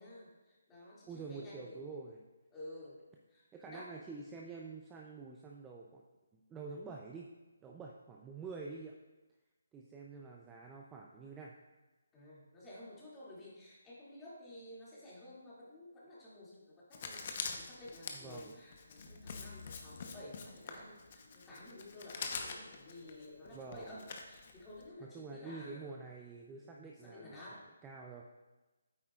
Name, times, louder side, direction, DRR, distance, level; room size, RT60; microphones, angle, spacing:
voice 1, 0.0-1.8 2.5-3.0 3.3-4.1 12.1-26.0 26.6-27.6, left 1 dB, 10° left, -8 dB, 2.3 m, -52 dB
voice 2, 1.1-2.2 3.5-6.0 6.3-7.3 7.6-8.9 9.7-11.5 18.1-18.6 23.5-24.0 25.0-28.2, right 4 dB, 10° right, -1 dB, 0.5 m, -47 dB
Writing, 16.9-24.9, left 5 dB, 45° left, 0.9 m, -45 dB
sound 1, 18.9-24.0, left 3 dB, 90° left, 2.2 m, -56 dB
8.8 x 8.6 x 2.4 m, 1.2 s
hypercardioid pair, 160°, 0 cm